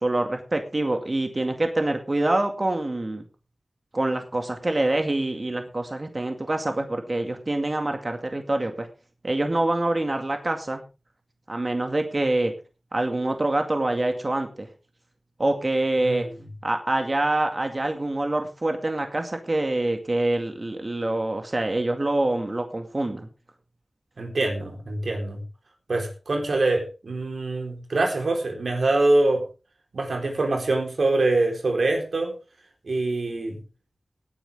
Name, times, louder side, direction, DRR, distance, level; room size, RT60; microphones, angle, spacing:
voice 1, 0.0-3.2 3.9-8.9 9.2-10.8 11.5-12.5 12.9-14.7 15.4-16.3 16.6-23.3, right 2 dB, 40° right, 5 dB, 2.0 m, -25 dB
voice 2, 24.2-25.4 25.9-29.5 29.9-32.3 32.9-33.6, right 2 dB, 90° right, 3 dB, 4.0 m, -24 dB
18.5 x 9.7 x 3.6 m, 0.32 s
wide cardioid pair, 65°, 0 cm